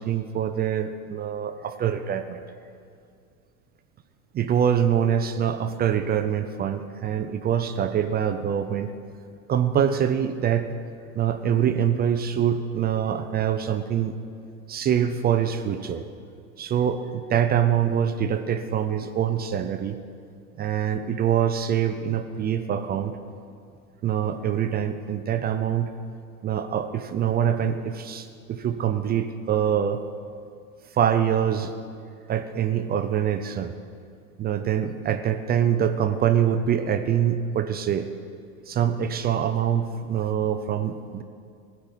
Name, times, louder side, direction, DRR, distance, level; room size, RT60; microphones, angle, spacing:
voice 1, 0.0-2.4 4.3-8.9 9.5-10.7 11.2-14.2 14.7-16.1 16.6-20.0 20.6-23.1 24.0-25.9 26.4-30.0 30.9-31.7 32.3-33.7 34.4-38.1 38.7-41.2, right 9 dB, 25° right, 9 dB, 0.4 m, -24 dB
15.0 x 5.4 x 8.2 m, 2.4 s
hypercardioid pair, 95°, 43 cm